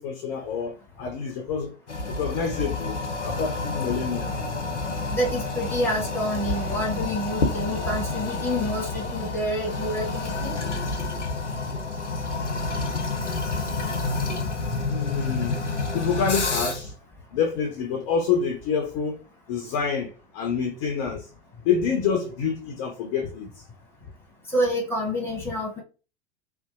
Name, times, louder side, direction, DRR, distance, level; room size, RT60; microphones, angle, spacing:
voice 1, 0.0-1.7 2.1-4.4 14.9-15.6 15.9-16.9 17.3-21.3 21.6-23.6, left 6 dB, 30° left, 0.4 m, -27 dB
Toilet flush, 1.9-16.9, left 3 dB, 90° left, 0.5 m, -29 dB
voice 2, 5.1-10.5 24.5-25.8, equal, 5° left, 0.9 m, -28 dB
2.6 x 2.1 x 2.4 m
figure-of-eight pair, 85°, 35 cm